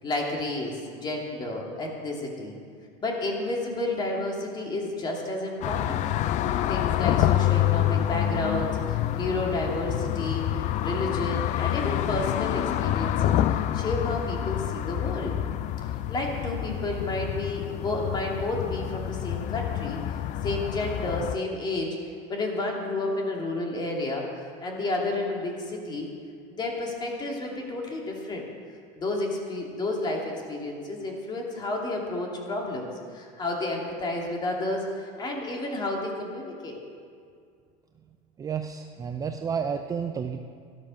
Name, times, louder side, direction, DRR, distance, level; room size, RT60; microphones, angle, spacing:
voice 1, 0.0-2.6 3.0-6.1 6.7-13.4 13.7-15.3 15.8-20.0 20.4-22.0 22.3-26.1 26.5-28.4 29.0-36.8, left 2 dB, 25° left, 0 dB, 2.6 m, -31 dB
sound 1, 5.6-21.4, left 12 dB, 40° left, 0.5 m, -27 dB
voice 2, 38.4-40.4, right 6 dB, 20° right, 6 dB, 0.5 m, -31 dB
13.0 x 12.0 x 6.3 m, 2.2 s
cardioid pair, 145°, 19 cm